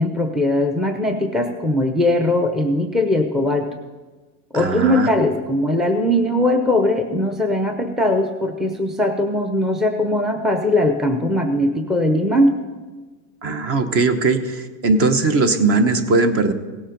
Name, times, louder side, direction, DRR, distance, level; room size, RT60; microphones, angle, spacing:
voice 1, 0.0-3.7 4.5-12.5, left 1 dB, ahead, 4 dB, 0.6 m, -20 dB
voice 2, 4.5-5.1 13.4-16.5, right 3 dB, 35° right, 9 dB, 0.9 m, -19 dB
17.0 x 7.3 x 5.2 m, 1.3 s
supercardioid pair, 130°, 42 cm